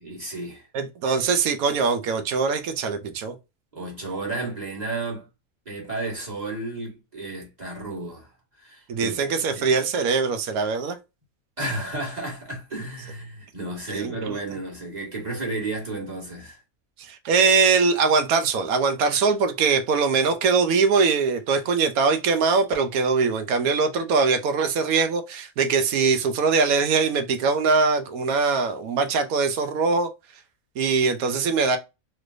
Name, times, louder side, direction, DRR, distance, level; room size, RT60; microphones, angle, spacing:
voice 1, 0.0-0.7 1.0-1.3 3.7-5.3 5.6-8.3 8.6-9.2 9.5-9.7 11.6-16.6, right 2 dB, 30° right, 1.6 m, -32 dB
voice 2, 0.7-3.4 8.9-11.0 13.9-14.3 17.1-30.1 30.8-31.8, right 4 dB, 85° right, 1.1 m, -22 dB
3.2 x 3.2 x 2.4 m
omnidirectional pair, 1.5 m